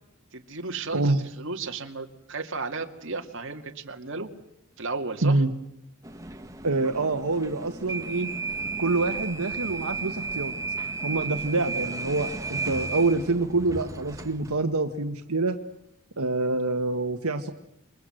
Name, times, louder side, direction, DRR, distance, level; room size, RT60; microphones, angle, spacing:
voice 1, 0.3-4.3 4.8-5.4, right 3 dB, 55° right, 4 dB, 2.2 m, -34 dB
voice 2, 5.2-5.5 6.6-8.3 8.8-10.5 11.0-15.6 16.2-17.5, right 3 dB, 85° right, 6 dB, 1.4 m, -26 dB
sound 1, 6.0-14.6, right 3 dB, 15° right, 1.3 m, -34 dB
28.0 x 22.0 x 7.8 m, 0.81 s
head